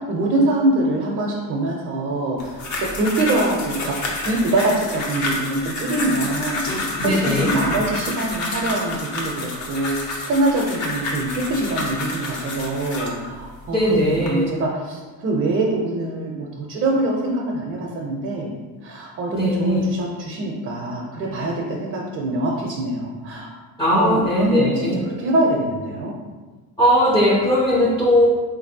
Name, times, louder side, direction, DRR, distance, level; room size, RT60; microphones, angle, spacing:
voice 1, 0.0-3.9 4.2-6.6 7.0-18.5 18.8-23.6 23.9-26.1, right 2 dB, 40° right, -2 dB, 0.5 m, -24 dB
sound 1, 2.4-13.2 13.8-14.3, left 2 dB, 50° left, 0.8 m, -29 dB
voice 2, 7.0-7.5 13.7-14.5 19.3-19.9 23.8-25.0 26.8-28.3, equal, 10° left, -6 dB, 0.4 m, -18 dB
3.9 x 2.6 x 2.7 m, 1.3 s
cardioid pair, 120°, 38 cm